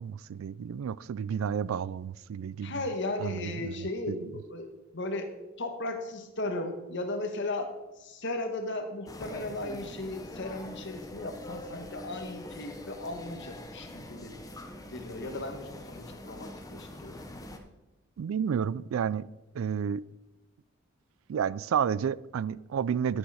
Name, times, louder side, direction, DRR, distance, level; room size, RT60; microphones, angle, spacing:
voice 1, 0.0-2.7 3.2-4.2 18.2-19.3 19.5-20.0 21.3-23.2, right 7 dB, 75° right, 20 dB, 0.3 m, -31 dB
voice 2, 2.6-7.7 8.0-14.4 14.9-17.2, left 2 dB, 60° left, 6 dB, 1.3 m, -36 dB
sound 1, 9.1-17.6, left 1 dB, 15° left, 0.8 m, -44 dB
11.0 x 6.5 x 4.8 m, 1.0 s
head